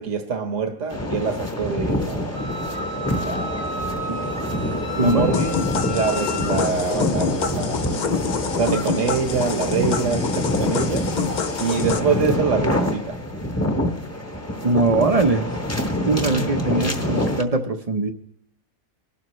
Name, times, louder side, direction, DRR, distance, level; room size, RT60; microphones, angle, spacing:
voice 1, 0.0-2.4 3.2-4.0 4.9-5.6 5.9-7.9 8.4-11.1 11.6-13.2, right 5 dB, 60° right, 1.6 m, -25 dB
sound 1, 0.9-17.4, left 1 dB, 10° left, 1.0 m, -26 dB
Wind instrument woodwind instrument, 2.3-6.6, left 1 dB, 80° left, 4.2 m, -33 dB
sound 2, 5.3-12.0, left 6 dB, 55° left, 0.5 m, -27 dB
voice 2, 14.6-15.4 16.0-18.1, right 3 dB, 35° right, 0.8 m, -21 dB
25.0 x 12.0 x 3.2 m
omnidirectional pair, 1.4 m